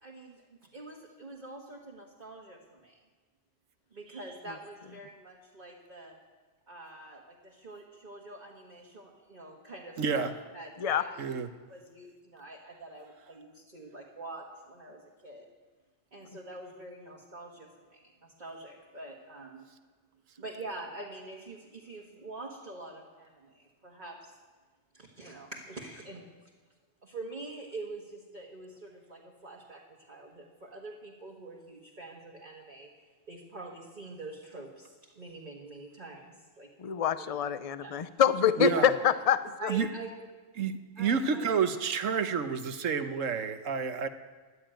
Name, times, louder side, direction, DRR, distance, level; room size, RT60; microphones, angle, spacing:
voice 1, 0.0-0.5 0.7-3.0 3.9-6.2 6.7-11.2 11.7-15.5 16.1-19.6 20.4-24.3 24.9-26.2 27.0-32.9 33.3-36.7 36.9-37.2 37.8-37.9 38.7-38.8 39.6-40.1 41.0-41.7 42.1-42.2, right 2 dB, 35° right, -2 dB, 1.7 m, -45 dB
voice 2, 10.0-10.3 11.2-11.5 38.6-38.9 39.7-39.9 40.6-44.1, right 6 dB, 80° right, 9 dB, 1.3 m, -29 dB
voice 3, 36.8-39.4 39.6-39.7, left 9 dB, 40° left, 13 dB, 0.5 m, -26 dB
14.0 x 11.0 x 9.0 m, 1.4 s
omnidirectional pair, 1.3 m